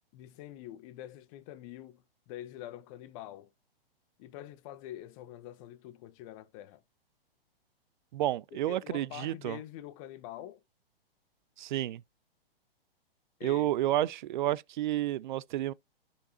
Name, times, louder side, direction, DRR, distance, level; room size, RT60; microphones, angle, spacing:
voice 1, 0.1-3.5 4.2-6.8 8.5-10.6 13.4-13.7, left 13 dB, 35° left, 0.9 m, -46 dB
voice 2, 8.1-9.6 11.6-12.0 13.4-15.7, right 13 dB, 55° right, 0.5 m, -30 dB
11.5 x 5.2 x 2.7 m
hypercardioid pair, 125°, 30 cm